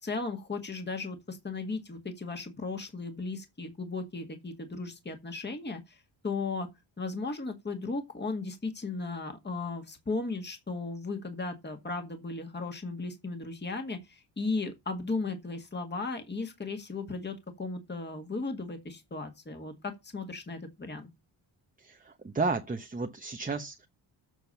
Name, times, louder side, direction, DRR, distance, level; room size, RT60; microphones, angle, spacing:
voice 1, 0.0-6.7 7.0-21.1, left 3 dB, 20° left, 2.0 m, -36 dB
voice 2, 21.8-23.9, right 4 dB, 20° right, 0.9 m, -33 dB
8.4 x 6.2 x 6.9 m
cardioid pair, 105°, 47 cm